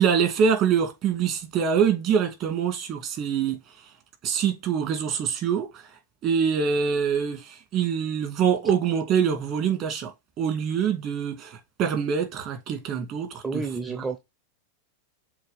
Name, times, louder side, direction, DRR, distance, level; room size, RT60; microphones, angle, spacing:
voice 1, 0.0-3.6 4.2-5.8 6.2-10.1 10.4-13.6 13.9-14.0, right 7 dB, 45° right, 2.4 m, -25 dB
voice 2, 13.4-14.2, right 4 dB, 20° right, 0.9 m, -30 dB
7.3 x 3.2 x 4.2 m
hypercardioid pair, 95°, 0 cm